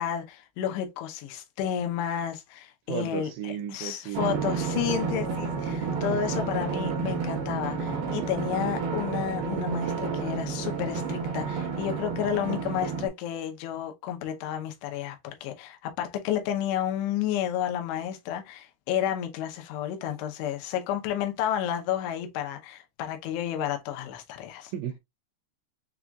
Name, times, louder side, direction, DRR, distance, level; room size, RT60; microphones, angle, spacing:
voice 1, 0.0-24.7, left 10 dB, 75° left, 2.6 m, -31 dB
voice 2, 2.9-4.7 6.1-6.2 24.7-25.0, right 9 dB, 85° right, 2.5 m, -34 dB
Drum, 4.1-13.1, right 5 dB, 70° right, 2.7 m, -30 dB
7.1 x 2.4 x 2.3 m
omnidirectional pair, 5.5 m